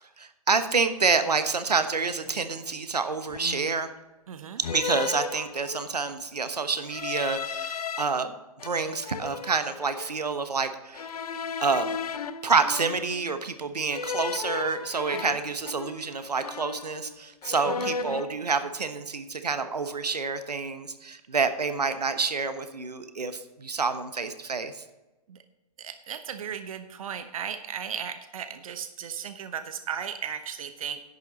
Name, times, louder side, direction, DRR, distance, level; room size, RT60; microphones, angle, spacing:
voice 1, 0.2-3.9 4.7-8.3 8.6-11.1 11.6-11.9 12.4-24.8, right 4 dB, 85° right, 10 dB, 1.1 m, -28 dB
sound 1, 2.2-2.5 3.3-3.9 4.6-6.0 6.8-8.0 8.6-10.2 10.9-13.3 13.9-16.2 16.4-17.1 17.4-18.3, left 6 dB, 70° left, 0.8 m, -35 dB
voice 2, 4.3-4.6 15.1-15.4 17.7-17.9 25.3-25.4 25.8-31.0, right 8 dB, 60° right, 9 dB, 1.0 m, -36 dB
11.0 x 9.4 x 4.0 m, 1.0 s
figure-of-eight pair, 125°, 20 cm